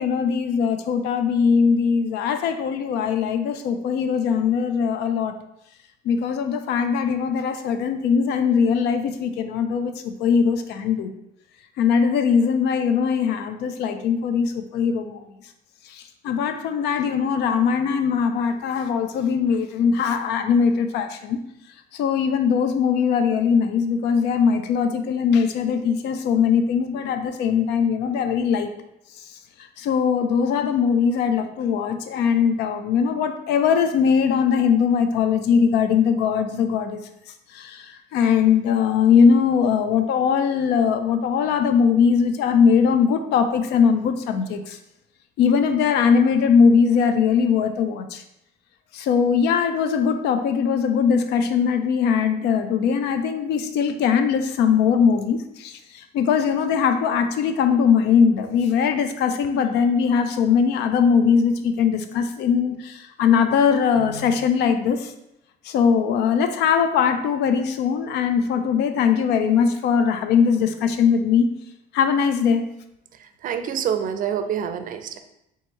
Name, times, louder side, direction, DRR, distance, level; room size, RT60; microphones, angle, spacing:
voice 1, 0.0-5.3 6.0-11.1 11.8-15.2 15.9-21.4 21.9-28.7 29.8-37.1 37.5-44.8 45.4-48.2 48.9-65.1 65.6-71.5 71.9-72.7, left 6 dB, 80° left, 8 dB, 0.5 m, -20 dB
voice 2, 73.4-75.2, right 8 dB, 55° right, 9 dB, 0.5 m, -26 dB
3.5 x 3.1 x 4.3 m, 0.83 s
cardioid pair, 110°, 17 cm